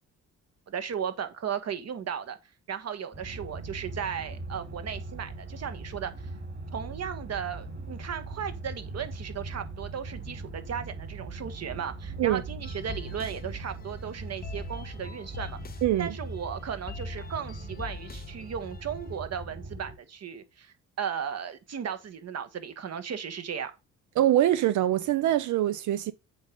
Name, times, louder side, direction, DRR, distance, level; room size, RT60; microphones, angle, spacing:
voice 1, 0.7-2.4 2.7-6.1 6.7-15.6 16.0-23.7, right 7 dB, 55° right, 1.7 m, -36 dB
sound 1, 3.1-19.9, right 2 dB, 35° right, 3.9 m, -40 dB
sound 2, 12.6-19.2, left 6 dB, 30° left, 0.9 m, -44 dB
voice 2, 24.2-26.1, right 13 dB, 75° right, 0.7 m, -24 dB
7.8 x 5.5 x 5.3 m
cardioid pair, 90°, 30 cm